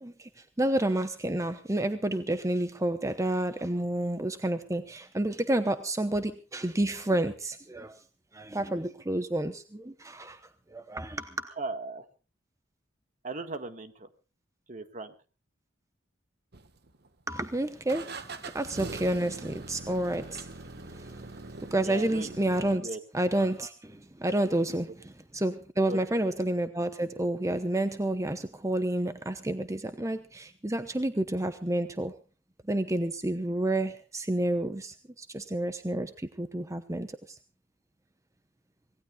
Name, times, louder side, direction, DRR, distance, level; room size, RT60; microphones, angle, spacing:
voice 1, 0.0-8.0 8.3-10.4 10.7-11.5 17.3-20.5 20.9-21.2 21.6-32.1 32.7-37.4, right 1 dB, 15° right, 9 dB, 0.9 m, -30 dB
voice 2, 11.6-12.1 13.2-14.1 14.7-15.1 21.8-23.0 25.9-26.2, right 2 dB, 40° right, 9 dB, 1.7 m, -38 dB
sound 1, 16.5-17.2 17.9-22.8, right 3 dB, 60° right, 1.5 m, -42 dB
26.0 x 18.5 x 2.4 m, 0.36 s
head